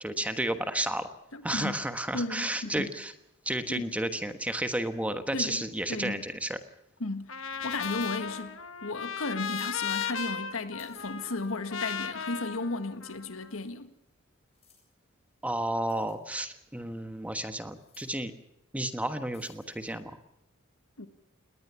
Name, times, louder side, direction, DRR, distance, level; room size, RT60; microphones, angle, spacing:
voice 1, 0.0-1.1 1.4-3.1 3.4-6.6 15.4-18.3 18.7-20.2, right 1 dB, 5° right, 1.2 m, -32 dB
voice 2, 1.3-1.8 2.1-2.9 3.7-3.9 5.3-5.6 5.9-6.2 7.0-7.3 7.6-13.9 21.0-21.1, left 2 dB, 85° left, 1.7 m, -34 dB
Trumpet, 7.3-13.5, left 7 dB, 70° left, 1.4 m, -36 dB
sound 1, 7.5-8.6 9.4-9.8 10.8-11.6 12.4-12.5 14.5-14.8 15.9-16.4 17.7-18.1 19.3-20.0, left 3 dB, 30° left, 7.6 m, -54 dB
19.5 x 19.5 x 7.0 m
head